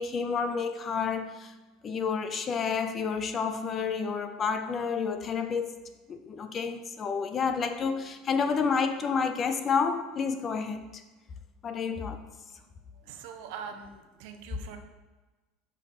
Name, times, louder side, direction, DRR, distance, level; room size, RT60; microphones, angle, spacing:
voice 1, 0.0-1.5 1.8-5.7 6.1-11.0 11.6-12.2, left 5 dB, 30° left, 8 dB, 0.5 m, -30 dB
voice 2, 13.1-14.8, right 7 dB, 70° right, 6 dB, 0.8 m, -42 dB
6.1 x 5.3 x 4.2 m, 1.2 s
supercardioid pair, 135°, 0 cm